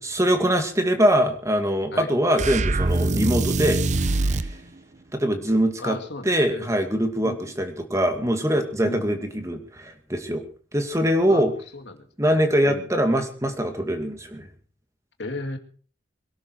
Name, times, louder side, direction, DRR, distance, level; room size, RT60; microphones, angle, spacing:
voice 1, 0.0-4.6 5.1-6.0 6.2-10.4 10.7-11.5 12.2-14.5, equal, 15° right, 5 dB, 2.4 m, -23 dB
sound 1, 2.4-4.5, right 2 dB, 40° right, 0.7 m, -23 dB
voice 2, 5.8-6.7 7.2-7.5 8.8-9.1 11.3-11.4 11.7-12.9 15.2-15.6, left 2 dB, 60° left, 6 dB, 2.4 m, -35 dB
23.0 x 12.0 x 4.8 m, 0.41 s
head